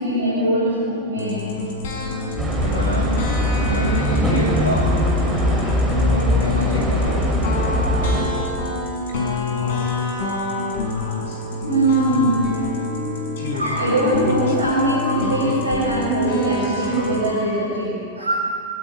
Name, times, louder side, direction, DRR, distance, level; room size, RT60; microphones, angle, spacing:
voice 1, 0.0-1.6 11.1-18.5, right 1 dB, 75° right, -4 dB, 7.6 m, -22 dB
sound 1, 1.2-17.3, left 3 dB, 55° left, 6.7 m, -27 dB
sound 2, 2.4-8.2, left 1 dB, 25° right, 7.2 m, -21 dB
voice 2, 2.6-3.3 3.6-4.9 6.0-7.5, equal, 85° left, -1 dB, 3.5 m, -28 dB
25.5 x 25.0 x 9.4 m, 2.4 s
figure-of-eight pair, 90°, 0 cm